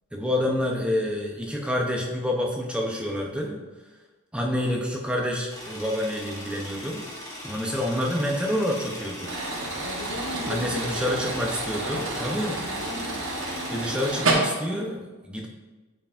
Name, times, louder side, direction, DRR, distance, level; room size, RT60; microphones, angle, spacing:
voice 1, 0.1-3.6 4.3-7.0 7.4-9.3 10.5-12.6 13.7-15.5, left 1 dB, 5° right, 0 dB, 0.5 m, -28 dB
sound 1, 5.5-14.2, left 1 dB, 15° left, 1.2 m, -39 dB
sound 2, 9.3-14.3, right 3 dB, 65° right, 1.0 m, -30 dB
voice 2, 9.8-11.2 12.3-13.2, left 2 dB, 85° left, 3 dB, 0.9 m, -37 dB
8.9 x 4.6 x 2.4 m, 1.2 s
head